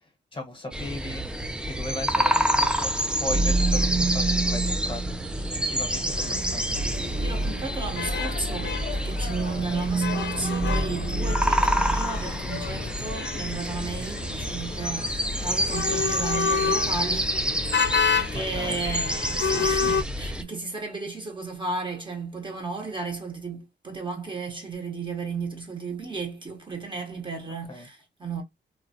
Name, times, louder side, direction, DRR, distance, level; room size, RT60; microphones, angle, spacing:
voice 1, 0.3-1.2 1.6-6.8 18.3-18.8 27.7-27.9, left 2 dB, 25° left, 0.8 m, -37 dB
sound 1, 0.7-20.4, equal, 5° right, 0.3 m, -28 dB
sound 2, 3.3-12.4, right 3 dB, 85° right, 1.2 m, -29 dB
sound 3, 6.1-20.0, left 6 dB, 80° left, 0.4 m, -31 dB
voice 2, 7.2-17.8 18.1-28.4, right 4 dB, 25° right, 0.7 m, -34 dB
3.2 x 2.0 x 2.5 m
wide cardioid pair, 140°, 19 cm